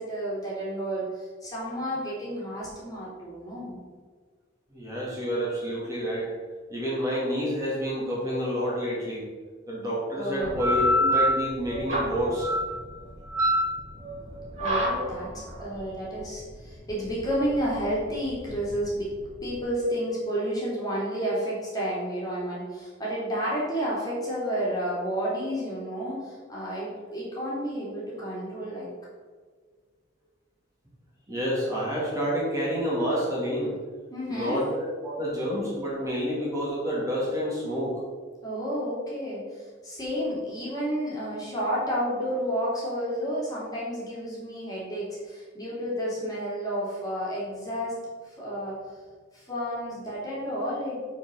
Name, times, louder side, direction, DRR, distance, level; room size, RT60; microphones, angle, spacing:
voice 1, 0.0-3.8 10.1-10.6 14.6-15.3 15.6-19.1 19.4-28.9 34.1-34.6 38.4-48.0 48.2-48.8 49.3-51.1, equal, 20° left, -7 dB, 2.6 m, -31 dB
voice 2, 4.7-6.3 6.7-9.2 9.7-12.5 31.3-33.7 34.3-38.0, equal, 15° right, -6 dB, 2.2 m, -29 dB
sound 1, 10.4-19.6, equal, 40° right, 2.4 m, -28 dB
6.5 x 4.8 x 6.3 m, 1.5 s
head